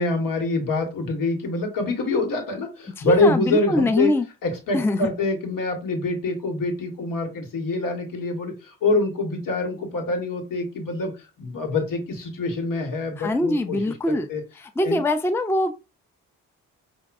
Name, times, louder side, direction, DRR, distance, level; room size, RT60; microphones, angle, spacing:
voice 1, 0.0-4.1 4.4-14.4 14.8-15.0, left 3 dB, 65° left, 1.6 m, -25 dB
voice 2, 3.0-4.3 4.7-5.1 13.2-14.3 14.6-15.7, left 1 dB, 5° left, 0.5 m, -23 dB
5.7 x 2.6 x 2.6 m
supercardioid pair, 45°, 35 cm